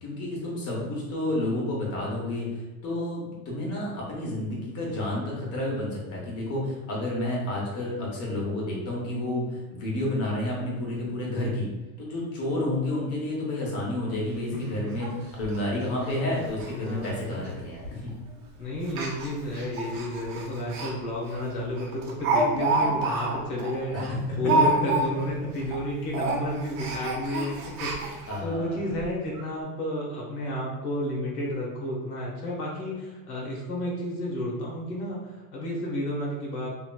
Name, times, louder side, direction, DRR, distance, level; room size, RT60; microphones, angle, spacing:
voice 1, 0.0-11.7 12.0-18.1 23.9-24.2 28.3-28.8, left 1 dB, 35° left, -3 dB, 1.0 m, -30 dB
Speech, 14.1-14.2 14.5-14.6 15.0-15.1 15.4-15.6 16.0-16.2 16.4-16.7 17.0-17.1 17.8-18.1 18.8-20.9 21.3-21.4 21.8-25.3 25.6-25.8 26.1-28.4 29.0-29.1 29.3-29.4, right 2 dB, 75° right, 0.9 m, -28 dB
voice 2, 16.7-17.1 18.6-24.1 24.4-36.7, equal, 75° left, -3 dB, 1.1 m, -31 dB
2.9 x 2.8 x 2.2 m, 1.2 s
supercardioid pair, 125°, 44 cm